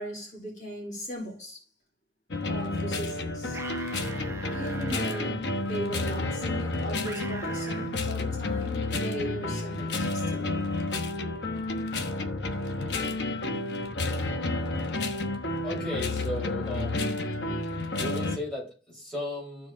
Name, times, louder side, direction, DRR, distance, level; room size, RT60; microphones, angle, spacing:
voice 1, 0.0-1.6 2.5-3.6 4.5-10.5, right 1 dB, 40° left, 4.0 m, -38 dB
sound 1, 2.3-18.4, left 2 dB, 75° left, 1.2 m, -30 dB
sound 2, 3.5-5.3 7.0-7.9, right 3 dB, 15° right, 0.8 m, -41 dB
voice 2, 15.6-17.2 17.9-19.7, left 1 dB, 5° left, 4.8 m, -35 dB
14.0 x 4.8 x 3.8 m
head